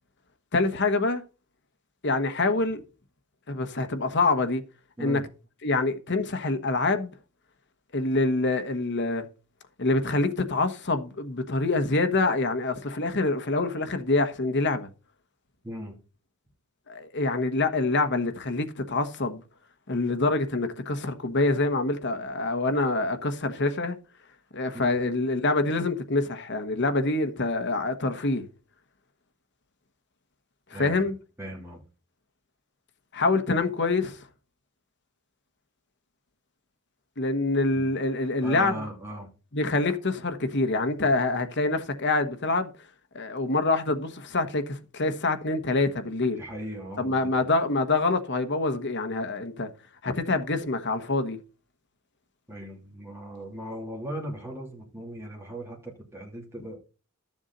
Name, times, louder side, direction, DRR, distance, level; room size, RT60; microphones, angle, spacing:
voice 1, 0.5-1.2 2.0-2.8 3.5-4.6 5.0-5.2 5.6-7.1 7.9-9.2 9.8-14.9 16.9-19.4 19.9-24.0 24.5-28.5 30.7-31.1 33.1-34.2 37.2-38.8 39.5-42.7 43.1-46.4 47.0-49.7 50.0-51.4, left 3 dB, 50° left, 1.3 m, -26 dB
voice 2, 15.6-16.0 24.7-25.0 30.7-31.0 31.4-31.8 37.7-37.9 38.4-39.3 46.4-47.4 52.5-56.8, equal, 10° right, 2.9 m, -38 dB
12.5 x 7.2 x 4.0 m
head